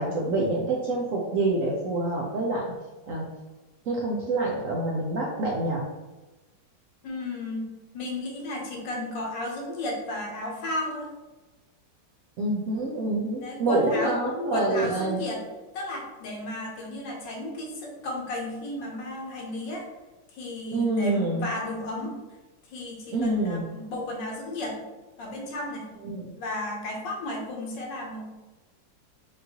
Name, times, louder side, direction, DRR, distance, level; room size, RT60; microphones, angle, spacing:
voice 1, 0.0-2.6 3.1-3.2 3.9-5.8 12.4-15.2 20.7-21.5 23.1-23.6 26.0-26.3, right 2 dB, 65° right, -2 dB, 0.8 m, -26 dB
voice 2, 7.0-7.7 7.9-11.1 13.4-14.2 14.5-15.4 15.7-19.9 20.3-22.1 22.7-24.8 25.2-25.9 26.4-28.3, left 1 dB, 80° left, 0 dB, 1.6 m, -33 dB
5.3 x 2.6 x 2.8 m, 1.1 s
omnidirectional pair, 1.9 m